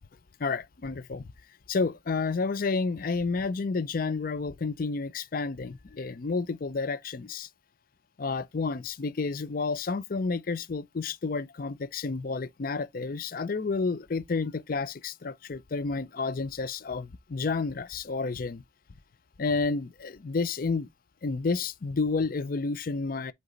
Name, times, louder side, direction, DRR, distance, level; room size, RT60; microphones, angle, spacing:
voice 1, 0.4-1.3 1.7-7.5 8.2-18.6 19.4-20.9 21.2-23.3, left 4 dB, 50° left, 0.5 m, -30 dB
7.9 x 3.2 x 3.9 m
head